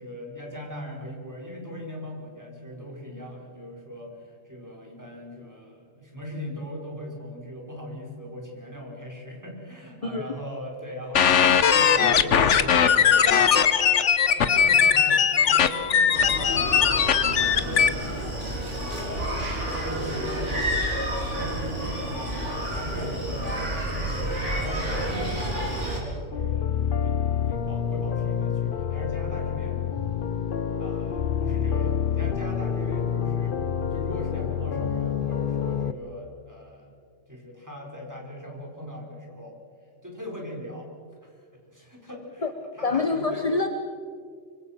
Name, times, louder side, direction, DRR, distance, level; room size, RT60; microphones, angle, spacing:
voice 1, 0.0-26.7 27.0-27.2 27.5-29.9 30.3-30.5 30.8-33.6 33.9-36.9 37.3-39.5 40.0-40.9 41.2-43.4, left 1 dB, 15° right, -1 dB, 4.8 m, -39 dB
voice 2, 10.0-10.4 42.4-42.5 42.8-43.7, left 3 dB, 30° left, 7 dB, 1.1 m, -26 dB
sound 1, 11.1-17.9, left 7 dB, 75° left, 1.3 m, -19 dB
Screaming, 16.1-26.0, right 1 dB, 75° right, 4.6 m, -30 dB
sound 2, 26.3-35.9, left 8 dB, 50° left, 0.9 m, -27 dB
25.5 x 24.0 x 5.9 m, 2.1 s
omnidirectional pair, 1.3 m